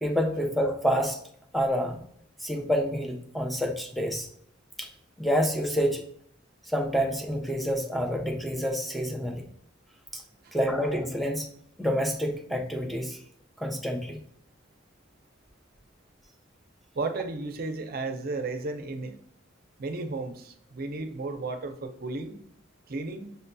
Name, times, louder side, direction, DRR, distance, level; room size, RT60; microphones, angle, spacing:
voice 1, 0.0-1.2 1.5-2.0 2.4-4.3 4.8-4.9 5.2-6.0 6.7-9.4 10.1-10.2 10.5-11.5 11.8-13.2 13.6-14.2, equal, ahead, 2 dB, 0.5 m, -28 dB
voice 2, 16.9-19.2 19.8-22.4 22.9-23.3, right 3 dB, 50° right, 7 dB, 0.5 m, -34 dB
6.6 x 2.7 x 2.2 m, 0.65 s
head